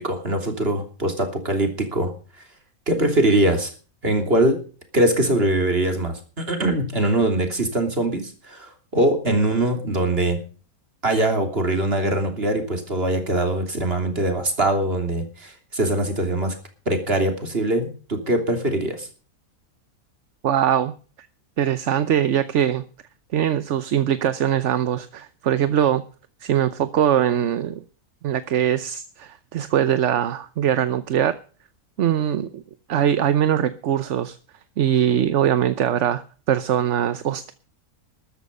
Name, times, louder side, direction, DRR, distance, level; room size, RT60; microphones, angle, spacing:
voice 1, 0.0-2.1 2.9-3.7 4.0-4.6 4.9-10.4 11.0-16.5 16.9-19.1, right 1 dB, 40° right, 5 dB, 3.4 m, -22 dB
voice 2, 20.4-20.9 21.6-22.8 23.3-26.0 26.4-27.8 28.2-31.4 32.0-32.6 32.9-34.4 34.8-36.2 36.5-37.5, right 10 dB, 60° right, 13 dB, 1.0 m, -21 dB
13.5 x 12.5 x 5.4 m, 0.38 s
omnidirectional pair, 1.6 m